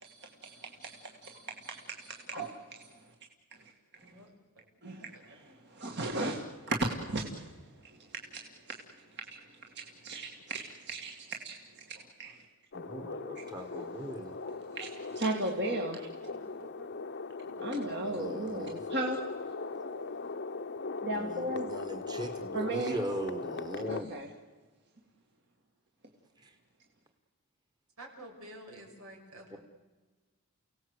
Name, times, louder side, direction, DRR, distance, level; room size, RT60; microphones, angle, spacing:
voice 1, 0.0-3.0 3.6-3.7 4.8-7.6 7.8-8.8 9.2-12.4 13.4-13.9 14.4-16.1 17.6-19.2 19.7-20.2 21.0-21.8 22.5-23.0 23.9-24.3, right 2 dB, 50° right, 2 dB, 2.2 m, -37 dB
sound 1, 12.7-24.0, left 4 dB, 50° left, 0.8 m, -39 dB
voice 2, 12.7-14.4 18.0-18.8 21.1-24.1 26.4-26.5 29.5-29.6, right 1 dB, 20° right, 4 dB, 1.5 m, -39 dB
voice 3, 16.2-16.9 17.4-17.9 28.0-29.6, right 1 dB, 85° right, 2 dB, 5.8 m, -50 dB
29.5 x 18.0 x 8.1 m, 1.3 s
head